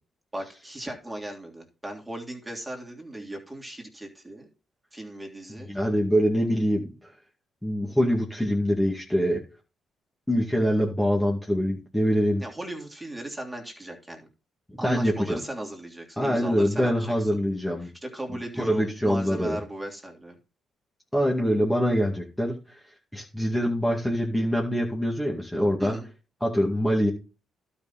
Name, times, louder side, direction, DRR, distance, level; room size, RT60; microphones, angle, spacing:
voice 1, 0.3-4.5 4.9-5.7 12.4-14.3 14.8-17.3 17.8-20.4 25.8-26.0, right 1 dB, 10° right, 1 dB, 3.2 m, -37 dB
voice 2, 5.7-7.1 7.6-9.4 10.3-12.4 14.8-15.4 16.2-17.9 18.6-19.6 21.1-22.8 23.1-26.0 26.4-27.1, equal, 5° left, -2 dB, 2.3 m, -24 dB
12.0 x 5.6 x 4.3 m, 0.32 s
cardioid pair, 90°, 0 cm